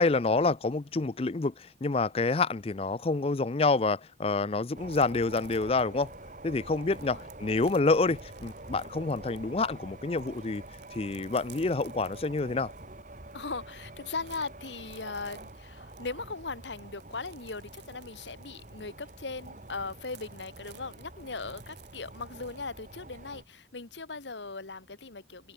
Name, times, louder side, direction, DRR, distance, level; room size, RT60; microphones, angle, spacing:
voice 1, 0.0-6.1 6.4-10.6 10.9-12.7, left 3 dB, 35° left, 0.5 m, -28 dB
sound 1, 4.7-23.4, right 2 dB, 45° right, 2.5 m, -47 dB
sound 2, 4.9-9.7 10.0-12.9 13.3-13.4 13.7-22.6, right 11 dB, 75° right, 2.8 m, -57 dB
voice 2, 6.9-7.2 13.3-25.5, left 4 dB, 85° left, 1.7 m, -39 dB
head